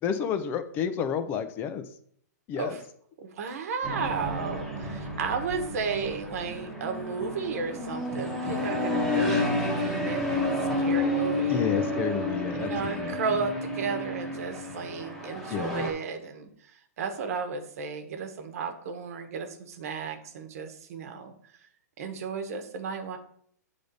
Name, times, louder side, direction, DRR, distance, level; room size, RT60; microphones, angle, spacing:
voice 1, 0.0-1.9 2.5-2.8 11.5-13.2 15.5-15.9, left 7 dB, 20° left, 10 dB, 0.5 m, -30 dB
voice 2, 3.2-11.6 12.5-16.7 17.0-21.3 22.0-23.2, right 5 dB, 55° right, 7 dB, 1.1 m, -34 dB
sound 1, 3.8-15.9, left 1 dB, ahead, 1.1 m, -30 dB
8.4 x 3.4 x 4.0 m, 0.65 s
hypercardioid pair, 150°, 9 cm